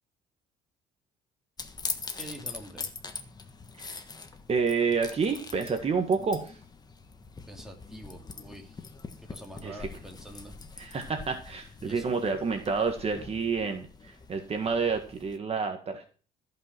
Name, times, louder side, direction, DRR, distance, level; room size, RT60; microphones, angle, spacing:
sound 1, 1.6-15.4, left 4 dB, 25° left, 1.4 m, -43 dB
voice 1, 2.1-2.9 7.5-8.8 9.2-10.5 11.8-12.1, right 1 dB, 5° right, 2 dB, 2.7 m, -46 dB
voice 2, 4.5-6.6 9.6-9.9 10.8-16.1, right 5 dB, 35° right, 5 dB, 1.8 m, -29 dB
14.5 x 5.8 x 6.0 m, 0.39 s
cardioid pair, 110°, 17 cm